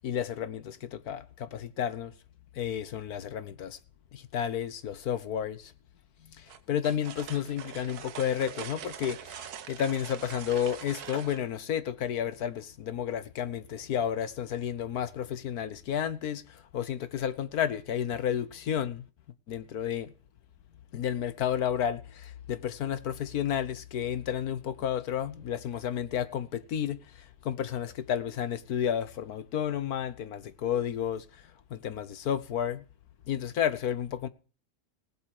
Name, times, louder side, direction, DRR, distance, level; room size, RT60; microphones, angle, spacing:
voice 1, 0.0-2.1 2.6-3.8 4.1-5.6 6.7-9.2 9.7-16.4 16.7-19.0 19.5-20.1 20.9-22.0 22.5-27.0 27.4-31.2 31.7-32.8 33.3-34.3, left 9 dB, 70° left, 1.4 m, -31 dB
sound 1, 6.5-11.4, right 9 dB, 70° right, 1.4 m, -43 dB
18.5 x 7.9 x 4.8 m
omnidirectional pair, 1.7 m